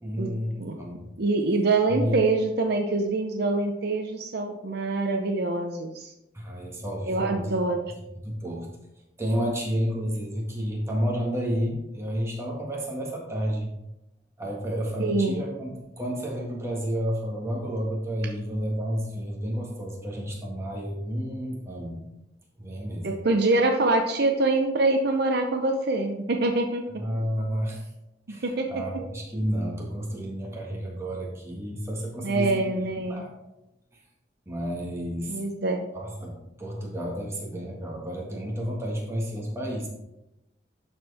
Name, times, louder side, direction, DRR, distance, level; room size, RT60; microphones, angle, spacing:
voice 1, 0.0-1.1 1.9-2.2 6.3-7.5 8.1-8.7 9.2-13.7 14.4-22.0 22.6-23.1 27.0-27.9 28.3-32.6 33.1-33.3 34.4-35.4 35.9-39.9, equal, 15° right, -2 dB, 1.7 m, -31 dB
voice 2, 1.2-6.1 7.1-7.8 15.0-15.4 23.0-27.0 28.4-28.7 32.2-33.2 35.3-35.8, right 2 dB, 55° right, 4 dB, 0.6 m, -25 dB
12.0 x 4.4 x 3.5 m, 0.91 s
head